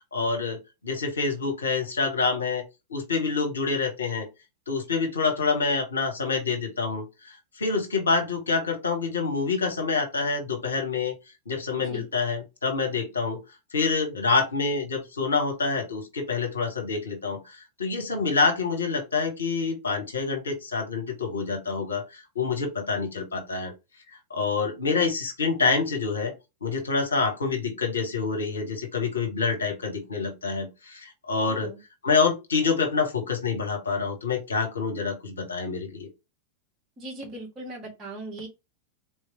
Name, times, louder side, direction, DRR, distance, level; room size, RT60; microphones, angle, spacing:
voice 1, 0.1-0.6 0.8-2.6 2.9-4.3 4.7-7.0 7.6-11.1 11.5-13.4 13.7-23.7 24.3-26.3 26.6-31.7 32.0-36.1, left 4 dB, 75° left, 1.0 m, -27 dB
voice 2, 31.4-31.8 37.0-38.5, right 2 dB, 25° right, 2.0 m, -39 dB
3.6 x 3.1 x 2.7 m
figure-of-eight pair, 90°, 0 cm